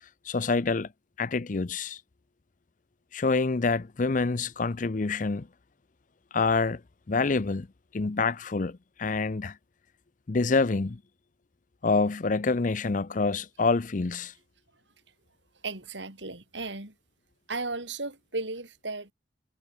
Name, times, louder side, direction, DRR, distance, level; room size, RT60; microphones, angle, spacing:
voice 1, 0.3-0.9 1.2-2.0 3.1-5.5 6.3-6.8 7.1-7.7 7.9-9.6 10.3-11.0 11.8-14.3, left 4 dB, 45° left, 0.6 m, -26 dB
voice 2, 15.6-16.9 17.5-19.1, right 3 dB, 85° right, 5.0 m, -35 dB
head